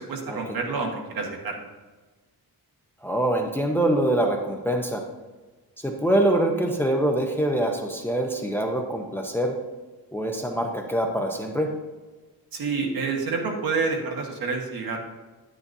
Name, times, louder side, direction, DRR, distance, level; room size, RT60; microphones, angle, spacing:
voice 1, 0.0-1.6 12.5-15.0, right 4 dB, 65° right, 1 dB, 1.6 m, -28 dB
voice 2, 3.0-5.0 5.8-9.5 10.1-11.7, right 1 dB, 5° left, 1 dB, 0.8 m, -24 dB
10.5 x 9.9 x 2.7 m, 1.3 s
wide cardioid pair, 160°, 39 cm